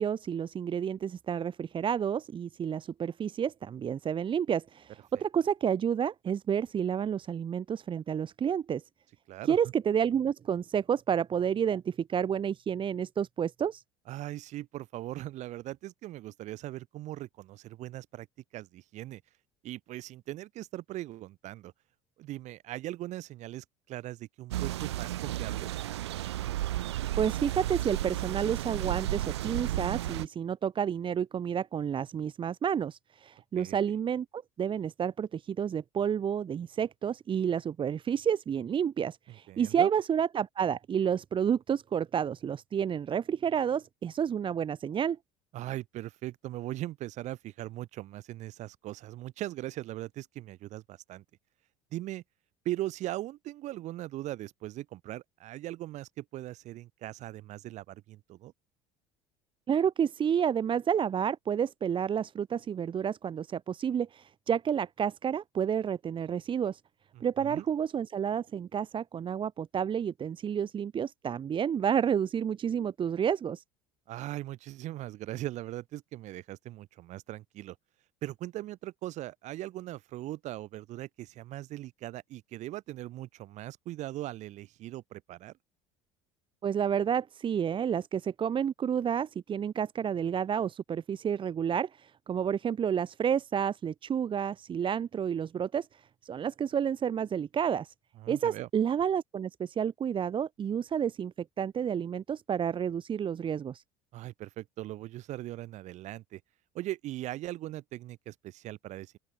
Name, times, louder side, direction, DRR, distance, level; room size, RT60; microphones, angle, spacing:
voice 1, 0.0-8.8 9.4-13.8 27.2-45.2 59.7-66.8 67.2-73.6 86.6-97.9 98.3-103.8, right 8 dB, 35° right, 1.6 m, -30 dB
voice 2, 14.1-18.3 18.5-19.2 19.6-21.7 22.2-25.7 33.5-33.8 39.3-39.9 45.5-51.2 51.9-52.2 52.6-58.5 67.1-67.6 74.1-77.8 78.2-85.5 98.2-98.7 104.1-106.4 106.7-109.2, right 15 dB, 60° right, 5.8 m, -40 dB
sound 1, 24.5-30.3, right 14 dB, 85° right, 0.9 m, -33 dB
open air
hypercardioid pair, 75°, 14 cm